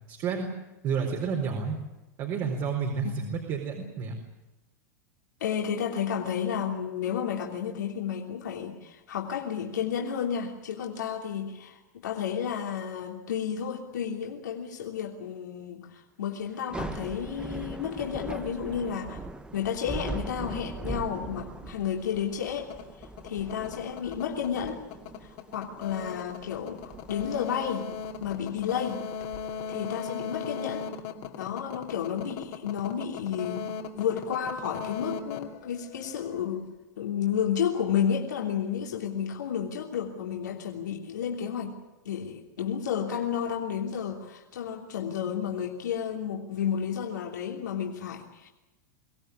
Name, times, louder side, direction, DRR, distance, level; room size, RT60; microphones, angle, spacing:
voice 1, 0.1-0.5 0.8-1.8 2.2-4.1, right 6 dB, 45° right, 2 dB, 4.3 m, -30 dB
voice 2, 3.0-3.3 5.4-19.2 19.5-22.7 23.2-24.8 25.5-27.9 28.2-29.0 29.7-30.9 31.4-33.7 34.0-36.7 37.0-41.8 42.0-48.5, left 8 dB, 90° left, 0 dB, 3.3 m, -31 dB
Thunder / Rain, 16.5-29.7, right 3 dB, 10° right, 1.3 m, -41 dB
sound 1, 22.6-36.4, left 7 dB, 55° left, 2.7 m, -38 dB
25.0 x 17.0 x 9.8 m, 1.0 s
hypercardioid pair, 120°, 9 cm